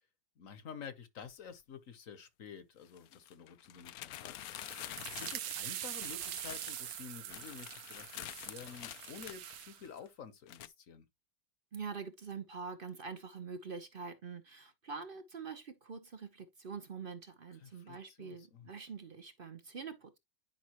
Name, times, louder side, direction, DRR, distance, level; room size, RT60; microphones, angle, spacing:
voice 1, 0.4-4.8 5.1-11.0 17.6-18.7, left 6 dB, 55° left, 1.2 m, -50 dB
sound 1, 1.2-1.3 2.9-10.1 10.5-10.7, left 13 dB, 70° left, 0.9 m, -48 dB
sound 2, 4.4-9.8, right 12 dB, 75° right, 1.3 m, -44 dB
voice 2, 11.7-20.2, right 5 dB, 45° right, 0.8 m, -45 dB
10.5 x 5.3 x 3.0 m
omnidirectional pair, 1.9 m